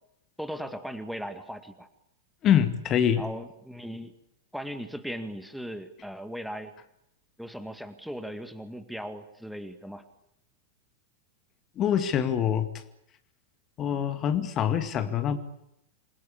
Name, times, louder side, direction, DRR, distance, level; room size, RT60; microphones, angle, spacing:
voice 1, 0.4-1.9 3.2-4.1 4.5-6.7 7.4-10.0, equal, ahead, 9 dB, 2.0 m, -38 dB
voice 2, 2.4-3.2 11.8-12.7 13.8-15.4, left 9 dB, 30° left, 9 dB, 2.2 m, -25 dB
27.5 x 22.0 x 8.6 m, 0.80 s
figure-of-eight pair, 90°, 0 cm